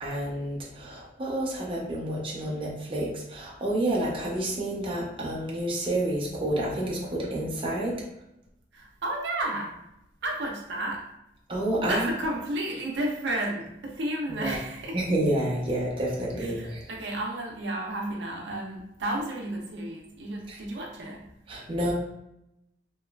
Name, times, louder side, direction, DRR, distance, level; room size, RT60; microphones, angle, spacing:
voice 1, 0.0-8.0 11.5-12.1 14.3-14.6 14.9-16.9 20.5-20.6 21.5-21.9, right 1 dB, 30° right, -4 dB, 0.6 m, -29 dB
voice 2, 8.7-9.8 10.2-11.0 11.9-15.0 16.4-21.3, right 1 dB, 75° right, -1 dB, 0.5 m, -32 dB
2.9 x 2.3 x 2.2 m, 0.83 s
head